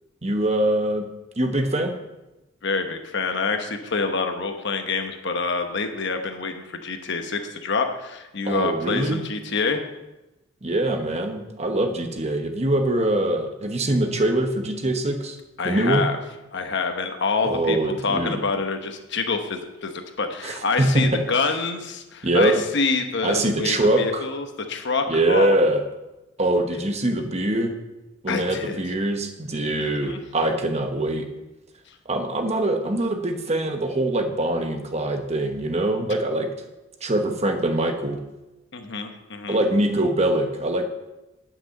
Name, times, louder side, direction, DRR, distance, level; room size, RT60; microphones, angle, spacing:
voice 1, 0.2-1.1 1.4-1.9 8.4-9.2 10.6-15.4 15.6-16.1 17.4-18.4 20.4-21.2 22.2-22.6 23.2-24.2 25.1-25.8 26.4-27.7 28.2-31.3 32.1-36.5 37.0-38.2 39.5-40.9, right 1 dB, 35° right, 5 dB, 1.1 m, -23 dB
voice 2, 2.6-9.8 15.6-16.2 16.5-17.8 18.0-25.6 26.7-26.8 28.3-28.8 29.8-30.2 38.7-39.6, left 4 dB, 60° left, 5 dB, 1.1 m, -26 dB
10.5 x 6.1 x 6.5 m, 1.0 s
head